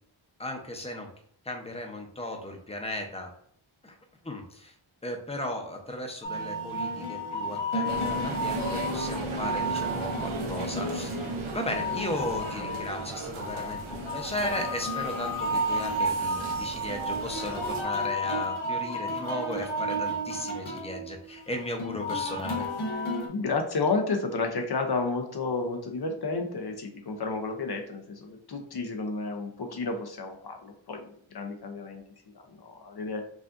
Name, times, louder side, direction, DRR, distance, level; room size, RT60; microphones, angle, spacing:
voice 1, 0.4-1.1 1.4-3.3 3.8-4.0 4.2-4.7 5.0-11.2 11.5-22.6, left 1 dB, 15° left, 3 dB, 0.7 m, -36 dB
sound 1, 6.2-23.3, equal, 80° left, 1.0 m, -32 dB
sound 2, 7.8-17.8, right 3 dB, 90° right, 0.7 m, -36 dB
voice 2, 23.3-32.0 32.3-33.2, left 3 dB, 55° left, 3 dB, 0.6 m, -31 dB
5.0 x 2.5 x 2.5 m, 0.63 s
wide cardioid pair, 95°, 47 cm